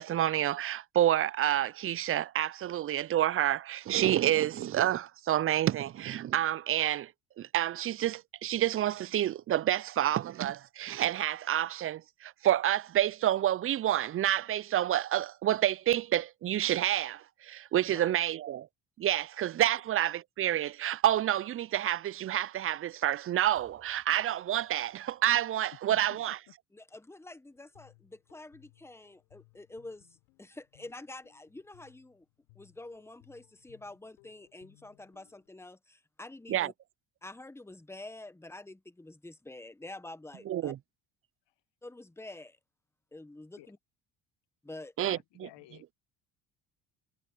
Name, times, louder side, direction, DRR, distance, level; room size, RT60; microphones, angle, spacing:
voice 1, 0.0-7.1 7.4-18.7 19.0-26.4 36.5-36.7 40.5-40.8 45.0-45.2, right 12 dB, 30° right, 0.4 m, -28 dB
voice 2, 17.9-18.2 25.9-26.5 43.6-43.7 45.0-45.9, left 16 dB, 65° left, 1.6 m, -51 dB
sound 1, 22.8-23.1 23.4-26.2 27.3-27.4, left 5 dB, 35° left, 6.8 m, -69 dB
voice 3, 26.7-32.2 32.5-36.7 37.2-40.7 41.8-42.6 43.1-43.8 44.6-44.9, left 2 dB, 5° left, 1.1 m, -47 dB
Guitar, 27.5-35.5, left 30 dB, 90° left, 7.3 m, -64 dB
supercardioid pair, 75°, 46 cm